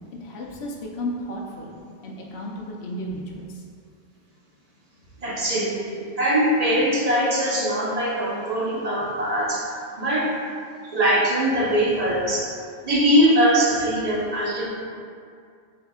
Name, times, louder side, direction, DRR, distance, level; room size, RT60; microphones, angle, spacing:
voice 1, 0.2-1.8 2.0-3.6, equal, 70° left, -2 dB, 0.9 m, -33 dB
voice 2, 5.2-9.7 10.0-10.3 10.8-12.5 12.8-14.7, equal, 40° right, -5 dB, 0.8 m, -22 dB
7.7 x 2.8 x 2.3 m, 2.2 s
omnidirectional pair, 1.2 m